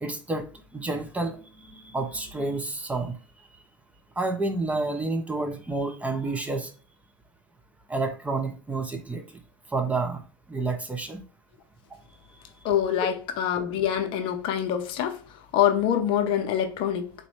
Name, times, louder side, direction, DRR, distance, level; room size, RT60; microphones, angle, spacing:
voice 1, 0.0-0.5 0.7-1.4 1.7-3.1 4.2-6.7 7.9-9.2 9.7-10.2 10.5-11.2, right 3 dB, 10° right, 0.6 m, -29 dB
voice 2, 12.6-17.1, left 10 dB, 45° left, 0.7 m, -25 dB
3.9 x 3.0 x 3.2 m
figure-of-eight pair, 80°, 12 cm